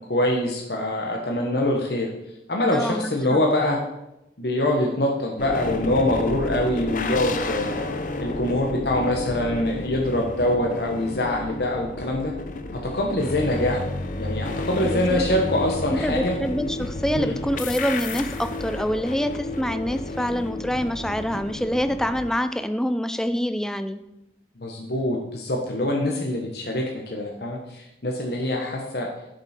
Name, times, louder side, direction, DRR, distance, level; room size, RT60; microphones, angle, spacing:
voice 1, 0.1-2.1 2.5-3.8 4.4-7.9 8.2-12.3 12.7-13.9 14.2-16.3 17.1-17.4 24.6-29.1, left 1 dB, 65° left, 0 dB, 1.3 m, -24 dB
voice 2, 2.7-3.4 14.9-15.3 15.9-24.0, equal, 5° left, 10 dB, 0.4 m, -26 dB
sound 1, 5.4-22.3, left 2 dB, 45° left, 0.7 m, -31 dB
10.5 x 7.7 x 4.4 m, 0.88 s
head